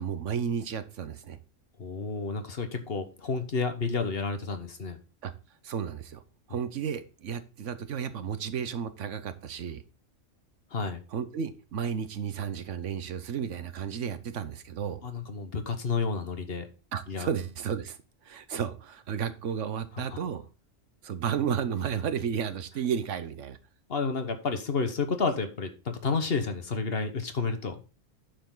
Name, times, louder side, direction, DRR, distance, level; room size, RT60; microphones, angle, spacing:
voice 1, 0.0-1.4 5.2-5.3 5.6-6.2 6.5-9.8 11.1-15.0 16.9-18.0 18.2-20.4 21.0-23.6, right 7 dB, 70° right, 12 dB, 1.3 m, -32 dB
voice 2, 1.8-5.0 6.5-6.6 10.7-11.0 15.0-16.7 17.1-17.3 20.0-20.2 23.9-27.8, left 4 dB, 50° left, 8 dB, 1.4 m, -30 dB
9.3 x 6.9 x 3.9 m, 0.33 s
omnidirectional pair, 1.3 m